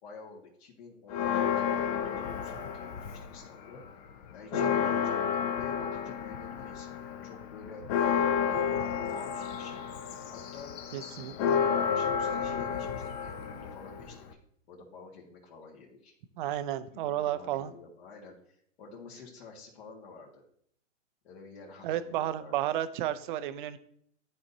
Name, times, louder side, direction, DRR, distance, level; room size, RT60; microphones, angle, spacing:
voice 1, 0.0-3.8 4.3-7.9 8.5-10.7 11.2-14.3 14.7-16.1 16.5-18.4 18.8-20.4 21.2-22.7, left 4 dB, 55° left, -4 dB, 1.8 m, -49 dB
Church bell, 1.1-3.5 3.8-3.9 4.3-14.3, left 7 dB, 30° left, 0.6 m, -31 dB
voice 2, 10.9-11.6 16.4-17.7 21.8-23.8, right 12 dB, 45° right, 12 dB, 0.5 m, -32 dB
12.0 x 4.2 x 2.7 m, 0.66 s
hypercardioid pair, 135°, 37 cm